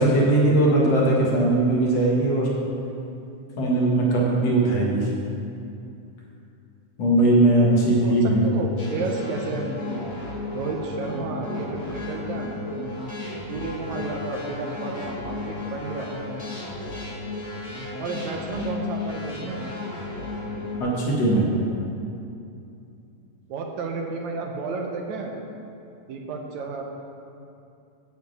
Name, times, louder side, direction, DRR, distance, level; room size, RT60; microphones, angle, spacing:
voice 1, 0.0-2.5 3.6-5.1 7.0-8.4 20.8-21.5, right 2 dB, 60° left, -4 dB, 2.7 m, -19 dB
voice 2, 7.5-10.1 10.5-12.6 13.5-16.1 18.0-19.6 21.2-22.0 23.5-25.4 26.1-26.8, right 3 dB, 70° right, 2 dB, 2.1 m, -32 dB
sound 1, 8.8-20.8, left 2 dB, 40° left, 1.4 m, -33 dB
9.4 x 5.2 x 7.9 m, 2.6 s
omnidirectional pair, 3.5 m